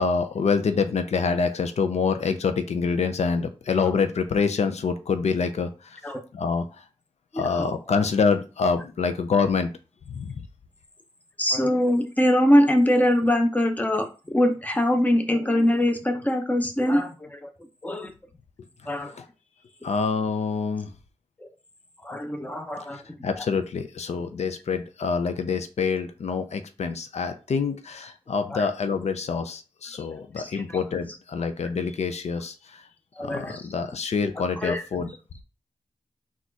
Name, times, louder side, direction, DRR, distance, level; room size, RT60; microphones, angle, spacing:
voice 1, 0.0-6.0 6.3-6.6 7.3-9.7 10.1-10.4 19.0-19.2 19.8-20.9 22.9-32.8 33.2-35.1, left 5 dB, 80° left, 9 dB, 0.5 m, -26 dB
voice 2, 7.3-7.7 11.4-17.5 17.8-18.1 18.8-19.1 22.0-23.0 23.4-23.5 28.5-28.7 30.1-30.3 30.5-30.8 33.2-33.6 34.6-34.8, left 1 dB, 15° left, 5 dB, 0.7 m, -23 dB
4.1 x 2.5 x 4.5 m, 0.32 s
wide cardioid pair, 95°, 11 cm